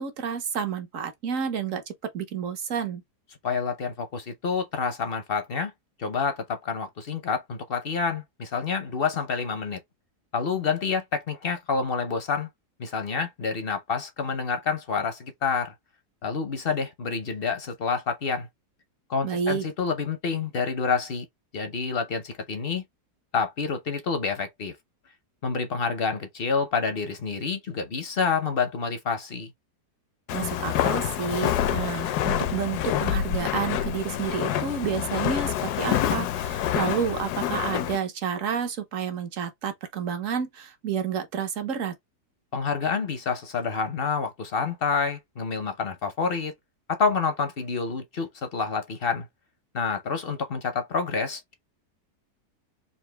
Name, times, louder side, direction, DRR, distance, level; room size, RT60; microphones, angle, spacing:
voice 1, 0.0-3.0 19.2-19.7 30.3-41.9, right 7 dB, 60° right, 1.1 m, -30 dB
voice 2, 3.4-5.7 6.0-9.8 10.3-12.5 12.8-15.7 16.2-18.5 19.1-21.2 21.5-22.8 23.3-24.7 25.4-29.5 42.5-46.5 46.9-49.3 49.7-51.5, left 5 dB, 50° left, 0.7 m, -28 dB
Walk footsteps, 30.3-38.0, left 10 dB, 75° left, 1.1 m, -27 dB
4.1 x 2.6 x 3.3 m
omnidirectional pair, 1.7 m